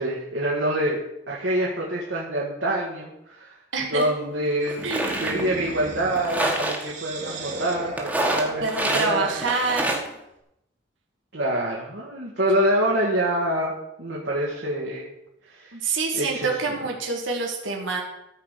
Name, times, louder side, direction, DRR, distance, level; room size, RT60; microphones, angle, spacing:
voice 1, 0.0-3.5 3.9-4.9 5.2-9.2 11.3-13.7 14.0-15.1 15.5-15.7 16.1-16.5, right 1 dB, 65° right, -3 dB, 1.7 m, -26 dB
voice 2, 3.7-4.1 4.8-5.2 8.6-10.0 15.7-18.0, right 4 dB, 85° right, 0 dB, 1.8 m, -26 dB
sound 1, 4.0-4.1 4.7-5.4 6.1-6.8 8.0-9.1 9.4-10.1, right 1 dB, 5° right, 1.6 m, -26 dB
sound 2, 4.6-10.1, right 2 dB, 40° right, 1.6 m, -37 dB
13.5 x 4.8 x 6.7 m, 0.86 s
head